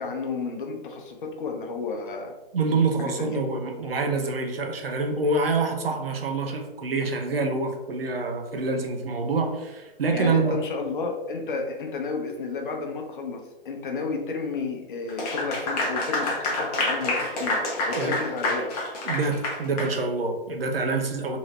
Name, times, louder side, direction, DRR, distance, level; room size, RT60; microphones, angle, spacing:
voice 1, 0.0-2.3 3.0-3.4 10.1-18.8, left 4 dB, 60° left, 3 dB, 0.8 m, -32 dB
voice 2, 2.5-10.5 18.0-18.2 19.0-21.4, right 3 dB, 75° right, 4 dB, 0.7 m, -26 dB
Clapping / Applause, 15.1-19.9, left 2 dB, 40° left, 1.1 m, -27 dB
4.1 x 2.9 x 2.6 m, 1.1 s
figure-of-eight pair, 120°, 29 cm